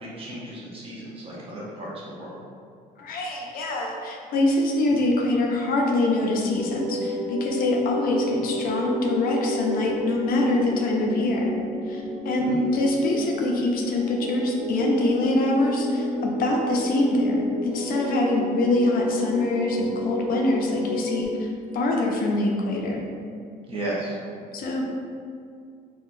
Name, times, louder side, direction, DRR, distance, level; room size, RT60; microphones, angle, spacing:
voice 1, 0.0-2.4 12.4-12.6 23.7-24.2, right 1 dB, 35° right, -6 dB, 0.9 m, -34 dB
voice 2, 3.0-23.1 24.5-24.8, left 2 dB, 60° left, 0 dB, 0.5 m, -24 dB
sound 1, 6.3-21.3, left 1 dB, 75° right, 1.1 m, -31 dB
3.5 x 2.3 x 2.6 m, 2.2 s
cardioid pair, 110°, 17 cm